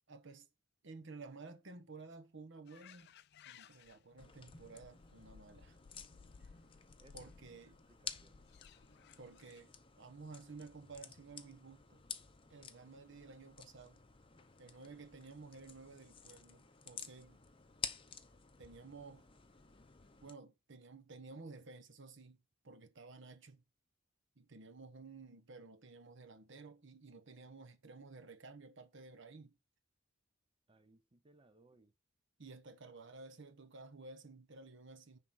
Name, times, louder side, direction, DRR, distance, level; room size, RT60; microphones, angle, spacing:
voice 1, 0.1-0.5 0.8-3.1 3.4-5.8 6.4-6.5 7.1-7.8 9.2-12.0 12.5-14.0 14.6-17.4 18.6-19.2 20.2-23.6 24.4-29.5 32.4-35.2, right 3 dB, 60° right, 1.0 m, -54 dB
sound 1, 2.7-9.6, left 6 dB, 55° left, 0.4 m, -61 dB
sound 2, 4.2-20.3, left 7 dB, 25° left, 0.7 m, -52 dB
voice 2, 7.0-8.5 30.7-31.9, right 2 dB, 25° right, 0.6 m, -67 dB
9.9 x 3.8 x 6.2 m
head